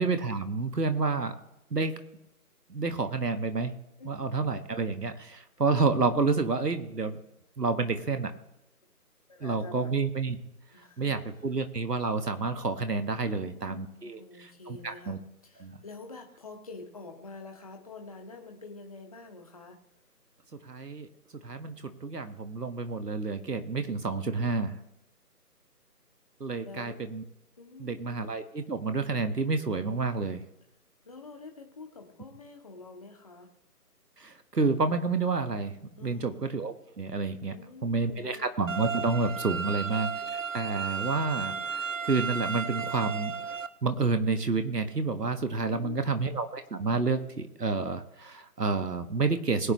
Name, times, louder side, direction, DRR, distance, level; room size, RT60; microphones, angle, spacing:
voice 1, 0.0-1.4 1.7-2.0 2.7-3.7 4.0-7.2 7.6-8.3 9.4-10.4 11.0-15.2 15.6-15.8 20.6-21.1 21.4-24.8 26.4-27.2 27.8-30.4 34.2-37.5 37.8-43.3 43.8-49.7, right 4 dB, 80° right, 8 dB, 1.6 m, -29 dB
voice 2, 9.3-9.9 10.7-11.6 13.3-19.8 26.6-27.0 27.6-28.2 31.0-33.5 36.0-36.4 37.4-38.5 45.7-46.2, left 3 dB, 25° left, 3 dB, 1.2 m, -47 dB
sound 1, 38.7-43.7, right 5 dB, 55° right, 0.7 m, -34 dB
21.0 x 8.5 x 3.2 m, 0.89 s
figure-of-eight pair, 160°, 47 cm